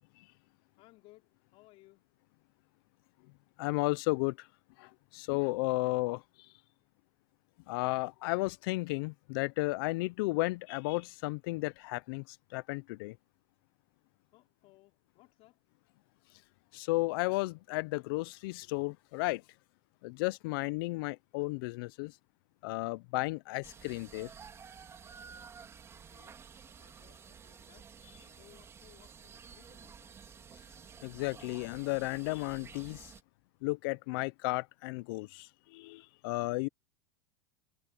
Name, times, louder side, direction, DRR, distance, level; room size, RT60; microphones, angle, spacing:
voice 1, 0.5-2.1 14.3-15.6 25.9-26.4 26.8-28.0 28.3-30.2, left 19 dB, 45° left, 5.1 m, -62 dB
voice 2, 3.6-4.4 4.8-6.2 7.7-13.2 16.7-19.4 20.0-22.1 22.6-24.3 31.0-33.0 33.6-36.7, left 23 dB, 60° left, 0.6 m, -33 dB
sound 1, 23.6-33.2, right 6 dB, 20° right, 3.9 m, -52 dB
supercardioid pair, 150°, 13 cm